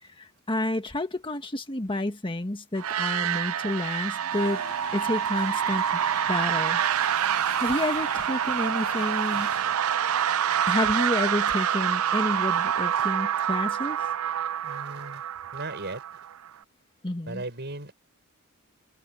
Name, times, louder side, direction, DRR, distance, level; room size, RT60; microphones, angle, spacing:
voice 1, 0.0-4.6 4.9-6.0 6.3-6.8 7.6-9.5 10.7-14.0 17.0-17.4, left 1 dB, 25° left, 1.6 m, -30 dB
sound 1, 2.8-16.5, right 9 dB, 70° right, 0.5 m, -27 dB
sound 2, 4.3-9.8, left 5 dB, 85° left, 5.6 m, -44 dB
voice 2, 14.6-15.2 15.5-16.0 17.3-17.9, right 2 dB, 50° right, 5.8 m, -36 dB
head